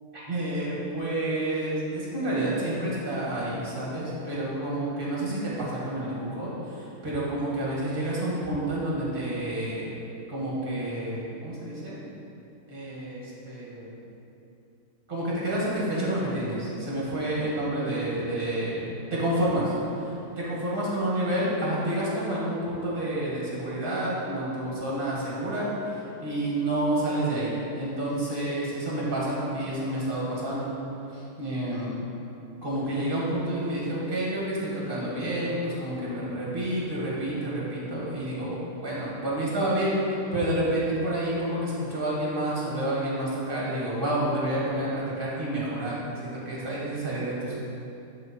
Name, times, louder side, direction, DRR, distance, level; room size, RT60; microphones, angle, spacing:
voice 1, 0.1-9.9 10.3-12.0 12.7-13.2 13.5-13.9 15.1-19.7 20.4-30.7 31.1-31.9 32.6-47.5, right 1 dB, 30° right, -6 dB, 2.3 m, -29 dB
11.5 x 4.7 x 4.6 m, 2.7 s
omnidirectional pair, 1.8 m